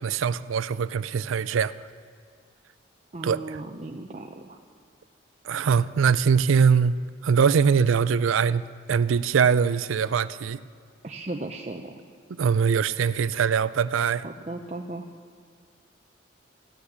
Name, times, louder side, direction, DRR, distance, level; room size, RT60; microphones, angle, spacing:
voice 1, 0.0-1.7 3.2-3.6 5.4-8.6 8.9-10.6 12.4-14.2, right 6 dB, 80° right, 0.4 m, -22 dB
voice 2, 3.1-4.6 11.0-12.0 14.2-15.1, right 2 dB, 35° right, 0.6 m, -36 dB
15.0 x 8.6 x 8.0 m
head